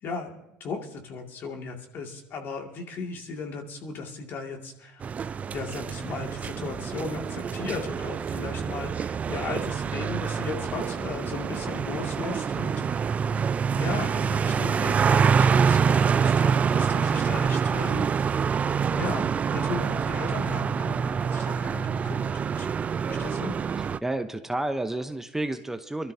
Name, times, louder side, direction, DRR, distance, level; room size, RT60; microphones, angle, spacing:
voice 1, 0.0-5.0 5.5-13.4 13.7-18.4 18.9-22.7 23.0-23.9, left 3 dB, 55° left, 2 dB, 2.3 m, -36 dB
sound 1, 5.0-24.0, right 6 dB, 35° right, 0.4 m, -26 dB
voice 2, 24.0-26.1, right 2 dB, 10° right, 8 dB, 0.8 m, -31 dB
24.5 x 13.0 x 2.8 m, 0.91 s
supercardioid pair, 80°, 4 cm